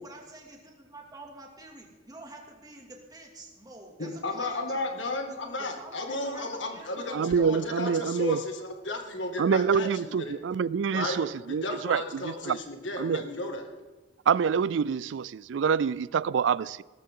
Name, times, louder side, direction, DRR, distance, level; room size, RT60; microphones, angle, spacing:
voice 1, 0.0-4.8 5.3-5.4 5.7-8.0, right 1 dB, 20° right, 1 dB, 2.3 m, -47 dB
voice 2, 4.0-10.4 10.9-11.2 11.5-13.6, left 2 dB, 75° left, 3 dB, 2.0 m, -34 dB
voice 3, 7.1-8.4 9.4-12.6 13.0-13.2 14.3-16.8, right 6 dB, 75° right, 21 dB, 0.4 m, -26 dB
18.5 x 14.5 x 3.8 m, 1.2 s
head